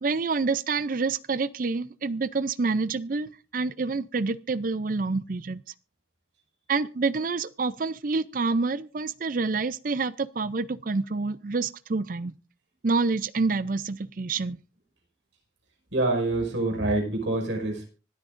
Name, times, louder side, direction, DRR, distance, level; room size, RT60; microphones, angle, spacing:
voice 1, 0.0-5.6 6.7-12.3 12.8-14.6, right 4 dB, 45° right, 0.5 m, -27 dB
voice 2, 15.9-17.9, right 2 dB, 80° right, 5.6 m, -26 dB
25.0 x 8.6 x 2.6 m
head